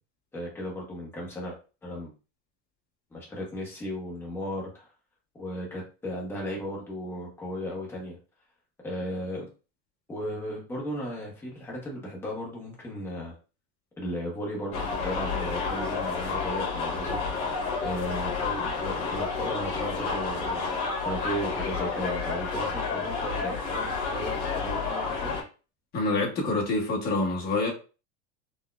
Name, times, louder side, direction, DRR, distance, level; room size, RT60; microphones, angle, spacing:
voice 1, 0.3-2.1 3.1-4.9 5.3-8.2 8.8-9.4 10.1-13.4 14.0-17.2 17.8-25.3, equal, 5° left, 0.7 m, -36 dB
sound 1, 14.7-25.4, left 4 dB, 55° left, 1.5 m, -30 dB
voice 2, 25.9-27.7, left 2 dB, 30° left, 0.9 m, -26 dB
4.0 x 2.1 x 2.3 m
cardioid pair, 170°, 34 cm